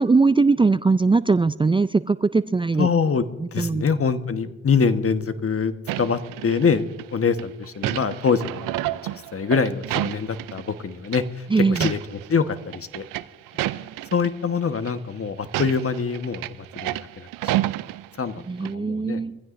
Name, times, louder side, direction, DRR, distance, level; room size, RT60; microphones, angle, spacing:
voice 1, 0.0-2.9 3.4-3.8 11.5-11.9 18.5-19.4, right 4 dB, 15° right, 14 dB, 0.4 m, -20 dB
voice 2, 2.8-3.2 3.5-11.2 11.6-12.0 12.3-13.0 14.1-16.4 16.7-17.3 18.2-18.3 18.6-19.2, left 5 dB, 45° left, 9 dB, 1.3 m, -24 dB
sound 1, 5.9-7.0 7.4-10.8 11.0-11.2 11.6-12.3 12.6-14.3 14.8-14.9 15.4-18.4 18.6-18.7, right 15 dB, 80° right, 0.6 m, -29 dB
24.0 x 15.5 x 2.6 m, 1.1 s
supercardioid pair, 45°, 32 cm